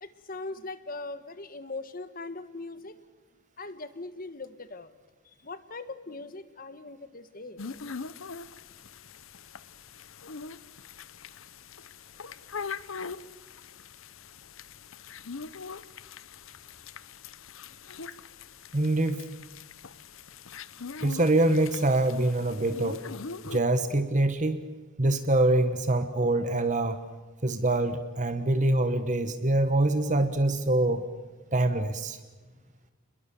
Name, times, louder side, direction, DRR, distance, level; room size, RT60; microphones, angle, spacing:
voice 1, 0.0-3.0 3.6-4.9 5.4-7.7, left 3 dB, 40° left, 12 dB, 1.5 m, -40 dB
sound 1, 7.6-23.6, left 5 dB, 65° left, 0.9 m, -42 dB
voice 2, 18.7-19.2 21.0-23.0 23.4-24.7 25.0-27.0 27.4-31.1 31.5-32.2, right 2 dB, 35° right, 9 dB, 1.3 m, -25 dB
29.5 x 21.5 x 7.0 m, 1.3 s
head